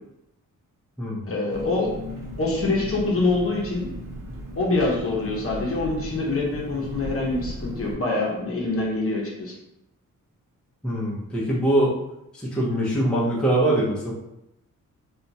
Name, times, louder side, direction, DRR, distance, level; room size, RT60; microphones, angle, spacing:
voice 1, 1.3-1.9 2.4-3.9 4.5-9.5, left 2 dB, 45° left, -2 dB, 0.7 m, -25 dB
Engine, 1.5-7.9, equal, 75° right, 0.8 m, -36 dB
voice 2, 10.8-11.9 12.4-14.1, right 1 dB, 5° left, -6 dB, 0.6 m, -23 dB
2.8 x 2.2 x 2.6 m, 0.85 s
wide cardioid pair, 120°, 33 cm